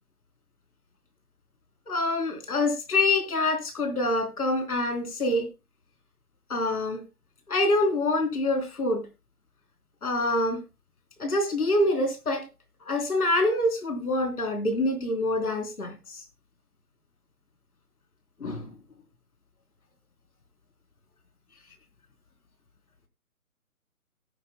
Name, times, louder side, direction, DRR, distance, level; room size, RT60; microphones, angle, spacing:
voice 1, 1.9-5.5 6.5-7.0 7.5-9.1 10.0-10.6 11.2-12.5 12.9-16.0 18.4-18.7, left 2 dB, 80° left, 3.8 m, -26 dB
18.0 x 9.8 x 2.2 m
hypercardioid pair, 170°, 44 cm